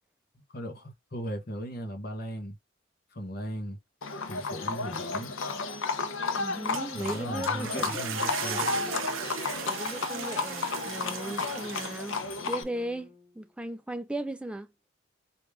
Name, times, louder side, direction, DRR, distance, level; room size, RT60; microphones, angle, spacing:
voice 1, 0.5-2.6 3.1-3.8 4.3-5.3 6.9-8.7, right 1 dB, 50° left, 1.1 m, -37 dB
Livestock farm animals working animals, 4.0-12.6, left 4 dB, 85° left, 0.7 m, -32 dB
Wind instrument woodwind instrument, 4.5-13.5, left 1 dB, 30° left, 0.7 m, -48 dB
voice 2, 6.3-8.2 8.5-9.1 9.6-14.7, right 1 dB, 5° right, 0.3 m, -37 dB
sound 1, 6.5-12.6, right 11 dB, 80° right, 0.4 m, -38 dB
3.5 x 2.4 x 3.5 m
head